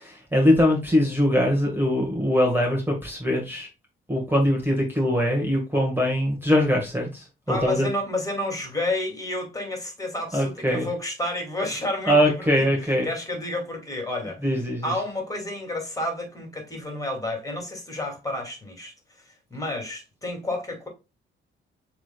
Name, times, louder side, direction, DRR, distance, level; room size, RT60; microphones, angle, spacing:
voice 1, 0.0-3.7 4.1-7.9 10.3-10.9 12.1-13.1 14.4-14.9, equal, 10° right, 1.6 m, -22 dB
voice 2, 7.5-12.1 12.6-14.4 14.8-18.9 19.5-20.9, left 1 dB, 15° left, 2.4 m, -30 dB
6.9 x 3.3 x 2.3 m
cardioid pair, 90°, 20 cm